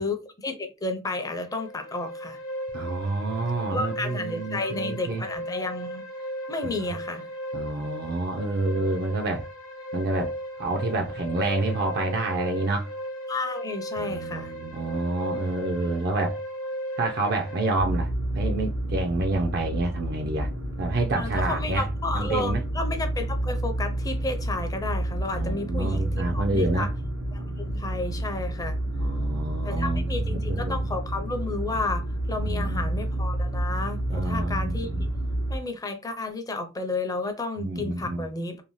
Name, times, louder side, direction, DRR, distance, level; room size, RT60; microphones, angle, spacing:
voice 1, 0.0-2.4 3.7-6.0 6.5-7.3 13.3-14.5 21.1-26.9 27.3-28.8 29.6-35.1 35.5-38.6, left 2 dB, 20° left, 0.5 m, -32 dB
sound 1, 1.3-17.7, equal, 80° left, 0.8 m, -37 dB
voice 2, 2.7-5.2 7.5-9.4 9.9-10.3 10.6-12.9 14.0-16.4 17.0-18.1 18.3-20.5 20.8-21.8 22.1-22.6 25.3-26.9 28.9-30.9 32.4-32.9 34.1-34.7 37.6-38.2, right 2 dB, 50° right, 0.4 m, -28 dB
sound 2, 17.8-35.6, right 1 dB, 70° right, 0.9 m, -29 dB
2.7 x 2.0 x 3.0 m
head